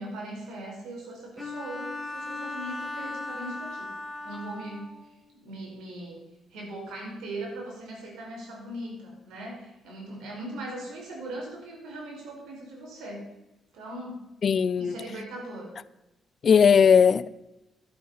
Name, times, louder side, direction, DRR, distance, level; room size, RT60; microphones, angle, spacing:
voice 1, 0.0-3.9 4.2-6.2 6.5-13.3 13.7-14.2 14.8-15.7, right 1 dB, 80° right, 5.0 m, -39 dB
Bowed string instrument, 1.4-5.1, left 2 dB, 10° right, 2.8 m, -37 dB
voice 2, 14.4-15.0 16.4-17.3, left 7 dB, 50° left, 0.5 m, -18 dB
11.0 x 11.0 x 5.7 m
cardioid pair, 90°, 0 cm